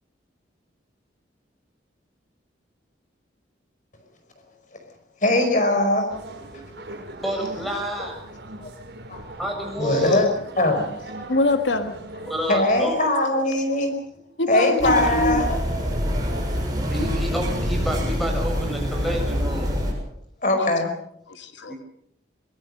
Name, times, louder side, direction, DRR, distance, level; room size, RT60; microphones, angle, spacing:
voice 1, 5.2-6.1 7.2-7.5 8.6-8.7 9.1-9.2 9.8-10.3 10.6-10.9 12.5-13.9 14.5-15.6 20.4-20.9, left 1 dB, 45° left, 6 dB, 5.1 m, -21 dB
sound 1, 6.1-12.9, right 1 dB, 70° right, 5.0 m, -40 dB
voice 2, 6.5-8.2 9.4-10.2 12.2-12.9 16.9-19.7 21.7-21.8, equal, ahead, 2 dB, 7.1 m, -29 dB
voice 3, 11.3-12.0 14.4-15.5 21.3-21.7, left 2 dB, 80° left, 8 dB, 1.6 m, -23 dB
sound 2, 14.8-19.9, equal, 20° right, 7.4 m, -25 dB
23.5 x 22.0 x 6.6 m, 0.73 s
head